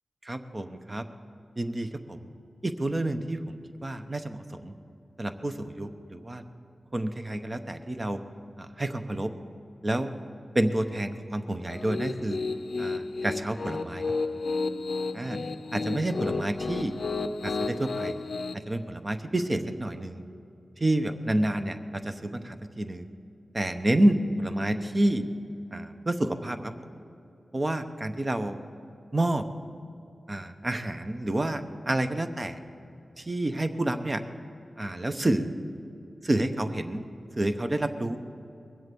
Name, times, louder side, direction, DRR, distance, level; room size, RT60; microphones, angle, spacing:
voice 1, 0.2-1.0 1.6-2.3 2.6-4.7 5.2-6.4 6.9-8.2 8.6-9.3 9.8-10.1 10.5-12.4 12.8-14.0 15.1-15.4 15.7-17.0 17.4-18.2 18.5-20.2 20.8-23.0 23.5-25.3 25.7-26.9 27.5-28.6 29.1-29.5 30.3-32.6 33.2-34.2 34.8-35.5 36.2-37.0 37.4-38.2, right 1 dB, 30° right, 8 dB, 0.9 m, -29 dB
Piano, 11.7-18.5, left 3 dB, 60° left, 0.6 m, -32 dB
21.5 x 7.8 x 6.9 m, 2.7 s
wide cardioid pair, 75°, 0 cm